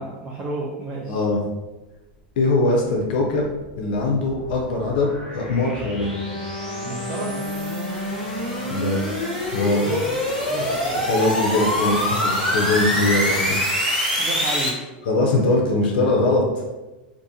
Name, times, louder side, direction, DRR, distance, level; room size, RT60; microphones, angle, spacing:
voice 1, 0.0-1.2 6.8-7.3 9.8-10.1 10.5-11.2 14.2-14.8, right 2 dB, 25° right, -4 dB, 0.4 m, -32 dB
voice 2, 1.1-1.4 2.4-3.5 3.8-6.1 8.7-9.0 9.5-9.9 11.1-13.6 15.1-16.6, left 2 dB, 75° left, 0 dB, 0.5 m, -21 dB
sound 1, 3.6-14.7, equal, 5° right, 1.0 m, -26 dB
Bowed string instrument, 6.0-10.1, left 1 dB, 30° left, 0.6 m, -33 dB
2.5 x 2.5 x 2.6 m, 1.1 s
supercardioid pair, 125°, 5 cm